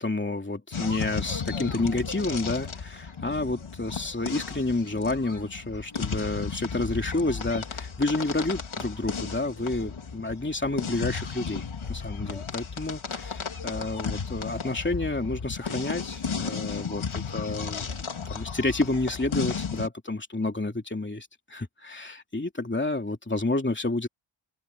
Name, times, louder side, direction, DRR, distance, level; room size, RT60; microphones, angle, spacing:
voice 1, 0.0-17.9 18.3-24.1, left 2 dB, 20° left, 2.8 m, -30 dB
sound 1, 0.7-19.9, left 5 dB, 75° left, 2.7 m, -34 dB
open air
cardioid pair, 50°, 49 cm